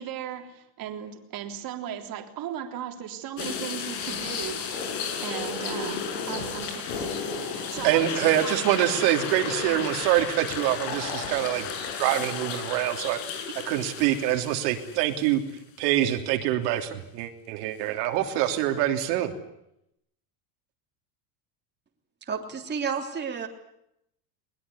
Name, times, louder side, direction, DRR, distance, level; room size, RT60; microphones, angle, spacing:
voice 1, 0.0-8.5, right 9 dB, 45° right, 5 dB, 3.6 m, -37 dB
sound 1, 3.4-15.6 16.0-16.1 18.5-18.6, left 6 dB, 90° left, 6.0 m, -33 dB
voice 2, 7.8-11.7 12.0-15.4 15.8-19.3, right 13 dB, 80° right, 4 dB, 3.3 m, -25 dB
voice 3, 22.2-23.5, right 6 dB, 20° right, 2 dB, 3.4 m, -31 dB
21.5 x 21.5 x 9.7 m, 0.79 s
cardioid pair, 145°, 50 cm